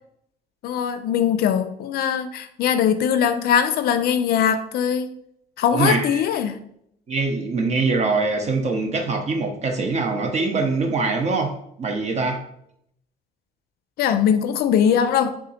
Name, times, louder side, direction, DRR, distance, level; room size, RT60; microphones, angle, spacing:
voice 1, 0.6-5.1 5.6-6.6 14.0-15.3, left 8 dB, 65° left, 9 dB, 0.4 m, -21 dB
voice 2, 5.7-6.2 7.1-12.4, right 3 dB, 40° right, 4 dB, 0.8 m, -23 dB
3.6 x 2.8 x 4.1 m, 0.73 s
cardioid pair, 110°, 17 cm